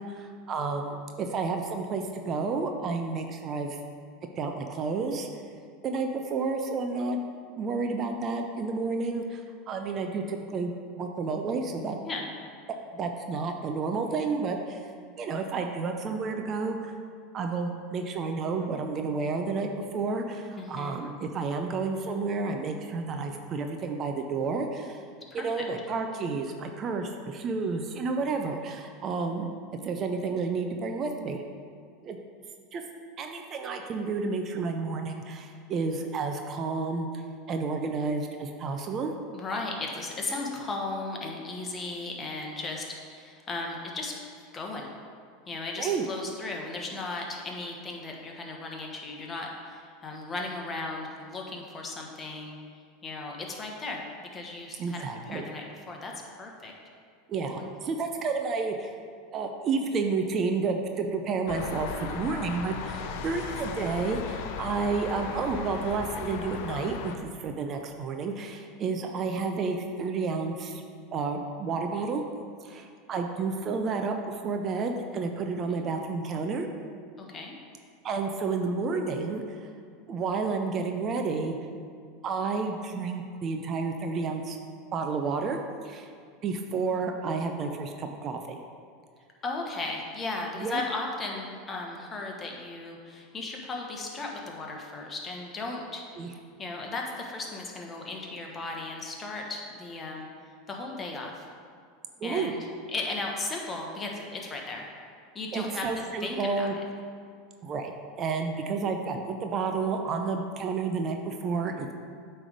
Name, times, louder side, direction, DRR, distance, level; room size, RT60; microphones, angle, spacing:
voice 1, 0.0-3.8 4.4-5.3 5.8-7.2 7.6-12.0 12.9-14.9 15.2-17.0 17.3-25.0 25.3-29.5 29.8-31.4 32.0-32.2 32.7-32.8 33.2-37.1 37.5-39.1 45.8-46.1 54.8-55.4 57.3-58.9 59.3-70.8 71.1-72.2 72.6-76.7 78.0-79.6 80.1-81.6 82.2-84.6 84.9-85.6 85.8-86.1 86.4-88.6 90.6-90.8 96.2-96.3 102.2-102.5 105.5-106.7 107.6-107.9 108.2-111.9, right 4 dB, 40° right, 4 dB, 0.6 m, -31 dB
voice 2, 20.5-21.0 25.3-25.5 39.3-44.1 44.5-44.9 45.4-52.6 53.0-54.0 54.3-56.1 56.4-56.7 57.5-57.7 75.7-75.8 77.2-77.5 89.4-100.3 100.7-101.4 102.2-102.6 102.9-104.9 105.3-105.9 106.2-106.7, left 3 dB, 25° left, 0 dB, 1.2 m, -36 dB
sound 1, 61.5-67.2, left 6 dB, 65° left, 0.5 m, -37 dB
8.4 x 3.4 x 5.1 m, 2.2 s
hypercardioid pair, 90°, 0 cm